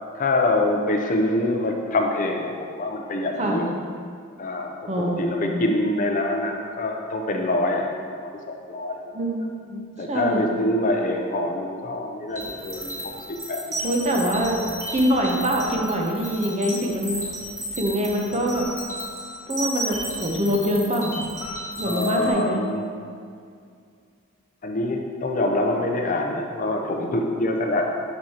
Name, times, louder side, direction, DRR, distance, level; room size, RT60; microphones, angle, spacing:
voice 1, 0.1-3.7 4.4-4.7 5.0-7.9 8.2-8.3 8.7-9.2 10.0-13.0 13.3-13.6 21.8-22.8 24.6-27.9, left 2 dB, 35° left, 2 dB, 0.6 m, -25 dB
voice 2, 4.9-5.5 9.1-9.4 9.7-9.8 10.1-10.5 13.8-14.6 14.9-17.2 17.7-18.6 19.5-21.2 21.8-22.6, equal, 30° right, 0 dB, 0.7 m, -24 dB
sound 1, 12.3-22.3, right 1 dB, 15° right, 1.5 m, -33 dB
7.5 x 6.4 x 2.9 m, 2.2 s
head